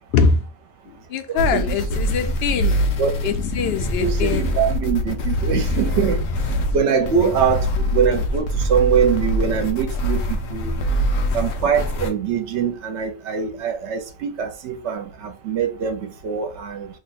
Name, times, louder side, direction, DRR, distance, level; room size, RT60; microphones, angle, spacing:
voice 1, 0.1-0.4 1.1-2.8 3.2-4.5 7.2-7.3, left 5 dB, 65° left, 0.7 m, -22 dB
voice 2, 1.3-2.0 3.0-3.1 4.0-6.2 6.7-7.7 7.9-10.7 11.3-16.9, right 7 dB, 65° right, 0.9 m, -23 dB
sound 1, 1.4-12.1, equal, 80° left, 1.0 m, -23 dB
2.8 x 2.1 x 4.0 m
omnidirectional pair, 1.4 m